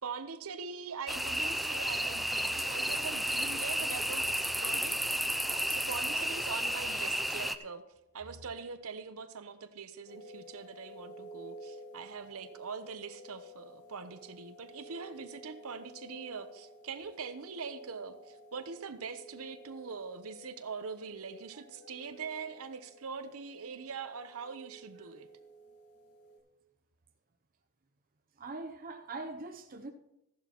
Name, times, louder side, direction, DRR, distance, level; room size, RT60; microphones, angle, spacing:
voice 1, 0.0-7.8 8.1-25.3, right 5 dB, 70° right, 9 dB, 0.8 m, -43 dB
sound 1, 1.1-7.5, equal, ahead, 0.4 m, -32 dB
sound 2, 10.1-26.4, right 1 dB, 90° left, 3.1 m, -53 dB
voice 2, 28.4-29.9, right 3 dB, 40° right, 4 dB, 0.7 m, -42 dB
14.5 x 11.0 x 3.0 m, 0.89 s
head